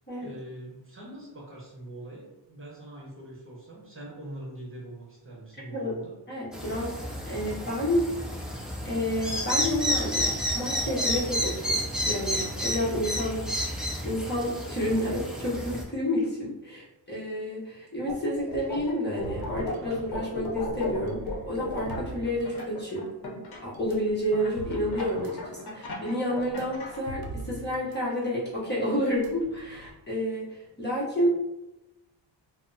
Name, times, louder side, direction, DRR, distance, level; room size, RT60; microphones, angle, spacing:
voice 1, 0.2-6.1, right 1 dB, 25° right, -5 dB, 1.0 m, -43 dB
voice 2, 6.3-7.0 7.3-8.0 8.3-8.6 8.8-11.8 12.1-13.5 14.0-31.3, equal, 20° left, -7 dB, 0.9 m, -30 dB
sound 1, 6.5-15.8, equal, ahead, 0.4 m, -31 dB
sound 2, 18.1-18.9 19.2-23.6 24.3-27.0, left 3 dB, 55° left, 0.8 m, -35 dB
sound 3, 19.2-23.1 23.7-28.0 28.2-28.4 29.1-29.9, right 2 dB, 50° right, 0.5 m, -43 dB
3.2 x 2.0 x 2.7 m, 0.95 s
cardioid pair, 95°, 47 cm